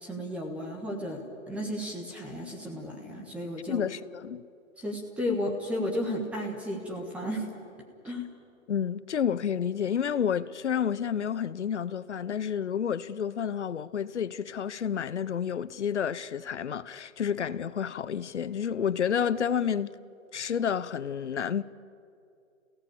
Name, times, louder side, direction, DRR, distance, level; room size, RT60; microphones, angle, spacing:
voice 1, 0.0-3.8 4.8-7.5 8.0-8.3, left 1 dB, 5° right, 1.4 m, -33 dB
voice 2, 3.7-4.4 8.7-19.9 20.3-21.6, left 8 dB, 60° left, 0.9 m, -30 dB
28.0 x 17.0 x 8.7 m
hypercardioid pair, 165°, 40 cm